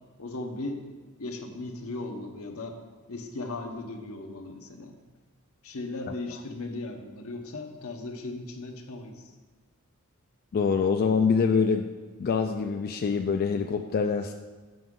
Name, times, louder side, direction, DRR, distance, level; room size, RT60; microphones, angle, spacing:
voice 1, 0.2-0.9 1.2-2.8 3.1-5.0 5.6-9.4, left 2 dB, 75° left, 3 dB, 0.8 m, -37 dB
voice 2, 10.5-11.9 12.2-14.3, left 5 dB, 45° left, 5 dB, 0.3 m, -25 dB
7.8 x 6.0 x 3.7 m, 1.3 s
head